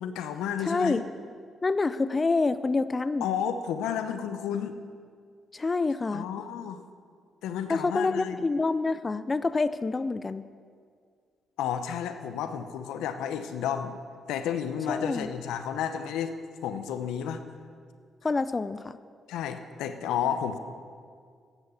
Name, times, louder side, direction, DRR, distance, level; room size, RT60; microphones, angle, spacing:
voice 1, 0.0-1.0 3.2-4.8 6.1-6.8 7.4-8.4 11.6-14.0 14.3-16.3 16.6-17.4 19.3-20.6, left 8 dB, 85° left, 9 dB, 0.8 m, -31 dB
voice 2, 0.6-1.0 1.6-3.3 5.5-6.3 7.7-10.5 14.9-15.3 18.2-19.0, left 3 dB, 30° left, 14 dB, 0.5 m, -27 dB
13.0 x 10.5 x 7.0 m, 2.1 s
supercardioid pair, 65°, 0 cm